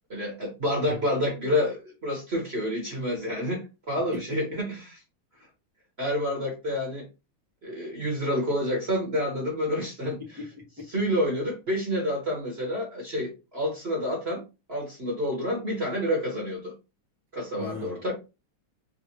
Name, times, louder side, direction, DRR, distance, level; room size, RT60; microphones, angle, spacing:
voice 1, 0.1-5.0 6.0-7.1 7.6-10.2 10.9-14.4 14.7-16.7 17.3-18.1, left 1 dB, 40° right, -2 dB, 1.0 m, -28 dB
voice 2, 10.2-10.9 17.6-18.1, left 2 dB, 20° right, -2 dB, 0.6 m, -39 dB
4.0 x 2.2 x 2.9 m, 0.28 s
omnidirectional pair, 2.4 m